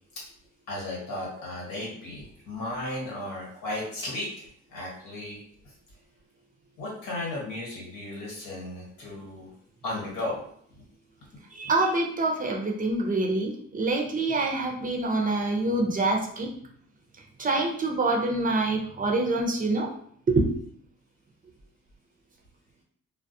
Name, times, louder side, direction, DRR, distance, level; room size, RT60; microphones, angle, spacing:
voice 1, 0.7-5.4 6.8-9.5 9.8-10.4, left 1 dB, 85° left, -4 dB, 1.2 m, -35 dB
voice 2, 11.5-16.5 17.4-19.9 20.3-20.5, right 2 dB, 30° right, 0 dB, 0.5 m, -26 dB
2.3 x 2.0 x 2.6 m, 0.63 s
cardioid pair, 90°, 30 cm